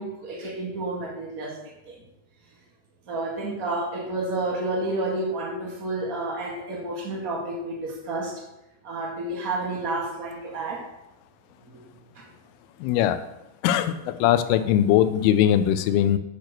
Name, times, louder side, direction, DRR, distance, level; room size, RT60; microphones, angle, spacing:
voice 1, 0.0-1.6 1.8-1.9 3.1-8.3 8.8-10.8 11.6-11.7 12.1-12.2, right 2 dB, 65° right, -2 dB, 0.8 m, -30 dB
voice 2, 12.8-13.2 13.6-16.2, left 11 dB, 80° left, 11 dB, 2.4 m, -21 dB
8.9 x 6.1 x 6.7 m, 0.92 s
omnidirectional pair, 4.9 m